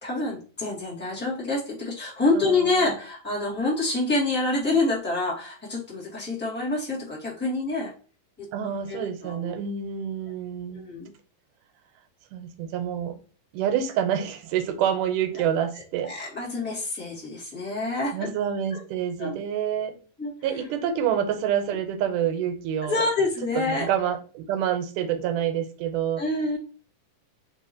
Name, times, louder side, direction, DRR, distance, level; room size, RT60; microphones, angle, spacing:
voice 1, 0.0-7.9 8.9-9.5 10.7-11.1 16.0-18.2 19.2-19.3 20.2-20.3 22.9-23.9 26.2-26.6, left 2 dB, 5° left, -6 dB, 1.1 m, -27 dB
voice 2, 2.3-3.0 8.5-10.9 12.3-13.2 13.5-16.1 18.1-19.9 20.4-23.1 23.6-26.2, right 9 dB, 85° right, 8 dB, 2.2 m, -27 dB
4.8 x 3.6 x 2.7 m, 0.38 s
omnidirectional pair, 3.7 m